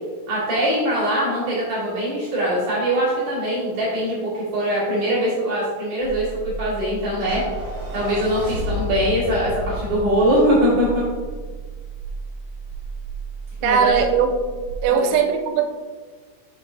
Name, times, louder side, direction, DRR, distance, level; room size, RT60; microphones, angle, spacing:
voice 1, 0.3-7.4 7.9-11.0 13.6-14.0 14.9-15.1, equal, 50° right, -10 dB, 3.1 m, -22 dB
sound 1, 6.0-14.9, right 5 dB, 75° left, 3.4 m, -34 dB
sound 2, 7.2-11.6, left 2 dB, 70° right, 1.8 m, -32 dB
voice 2, 13.6-14.3 14.8-15.6, right 7 dB, 85° right, 5 dB, 3.3 m, -19 dB
7.5 x 7.2 x 2.6 m, 1.5 s
omnidirectional pair, 5.9 m